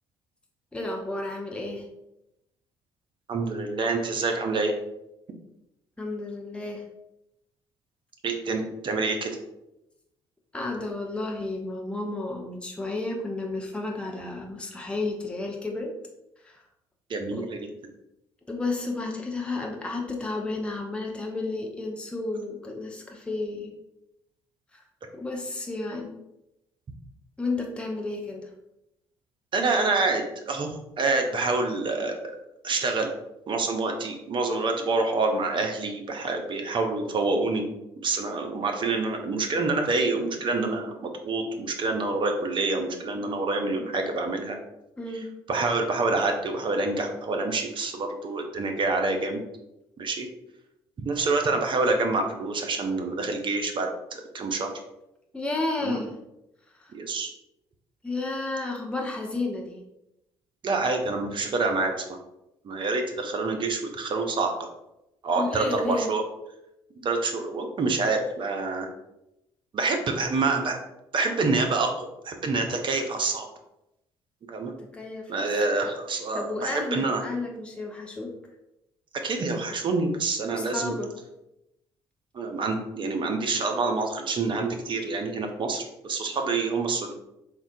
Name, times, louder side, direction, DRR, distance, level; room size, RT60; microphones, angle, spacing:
voice 1, 0.7-1.8 6.0-6.8 10.5-15.9 16.4-16.6 17.3-17.5 18.5-23.7 24.7-24.8 25.1-26.1 27.4-28.5 45.0-45.3 55.3-56.1 56.8-56.9 58.0-59.8 65.4-66.1 74.8-75.5 76.3-78.3 80.5-81.1, left 2 dB, 10° left, 0 dB, 0.6 m, -32 dB
voice 2, 3.3-4.7 8.2-9.4 17.1-17.7 29.5-32.1 32.6-33.1 33.5-37.7 38.0-44.6 45.5-49.4 50.0-50.3 51.0-54.7 55.8-56.0 56.9-57.3 60.6-61.9 62.6-64.5 65.2-66.2 67.0-68.9 69.7-70.8 71.1-73.5 74.5-74.7 75.3-77.2 79.2-81.0 82.3-87.1, right 3 dB, 40° right, 3 dB, 0.6 m, -27 dB
3.7 x 2.1 x 2.6 m, 0.89 s
figure-of-eight pair, 45°, 13 cm